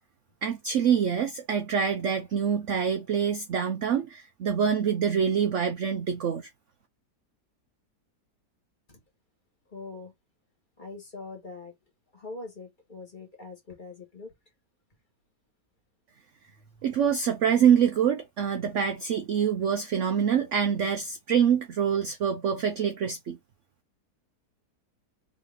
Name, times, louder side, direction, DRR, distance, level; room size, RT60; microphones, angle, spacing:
voice 1, 0.4-6.5 16.8-23.4, right 7 dB, 65° right, 0.7 m, -25 dB
voice 2, 9.7-10.1 10.8-11.7 12.1-14.3 16.8-16.9, left 3 dB, 30° left, 1.6 m, -42 dB
3.9 x 3.2 x 3.4 m
omnidirectional pair, 1.8 m